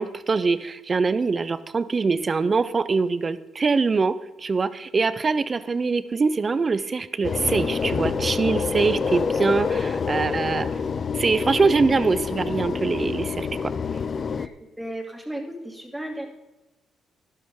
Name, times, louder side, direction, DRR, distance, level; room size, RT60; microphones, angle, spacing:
voice 1, 0.0-10.7 11.1-13.5, right 4 dB, 35° right, 14 dB, 0.7 m, -23 dB
sound 1, 7.2-14.5, left 5 dB, 45° left, 0.5 m, -27 dB
voice 2, 14.8-16.3, right 1 dB, 5° right, 1 dB, 2.6 m, -34 dB
12.0 x 11.5 x 3.8 m, 1.0 s
cardioid pair, 90°, 0 cm